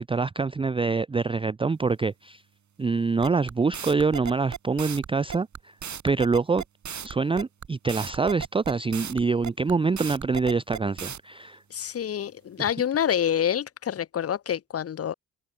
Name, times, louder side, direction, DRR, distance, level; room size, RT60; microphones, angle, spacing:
voice 1, 0.0-2.4 2.8-5.8 6.0-6.6 7.0-11.6 12.6-12.7, right 4 dB, 15° right, 0.5 m, -25 dB
sound 1, 3.2-11.2, right 7 dB, 45° right, 3.3 m, -36 dB
voice 2, 11.7-15.1, left 9 dB, 40° left, 0.8 m, -27 dB
hypercardioid pair, 45°, 38 cm